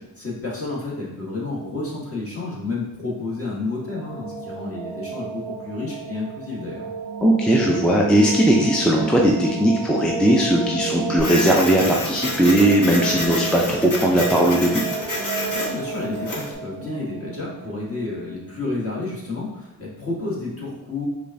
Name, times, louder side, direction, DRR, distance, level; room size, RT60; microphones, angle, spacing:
voice 1, 0.2-6.9 15.5-21.1, left 3 dB, 35° left, -5 dB, 1.5 m, -30 dB
sound 1, 3.6-18.5, right 4 dB, 70° right, 0.5 m, -32 dB
voice 2, 7.2-14.8, right 1 dB, ahead, -2 dB, 0.4 m, -18 dB
Printer, 11.2-16.5, left 1 dB, 50° left, 1.2 m, -29 dB
5.0 x 2.3 x 2.6 m, 0.98 s
cardioid pair, 75°, 39 cm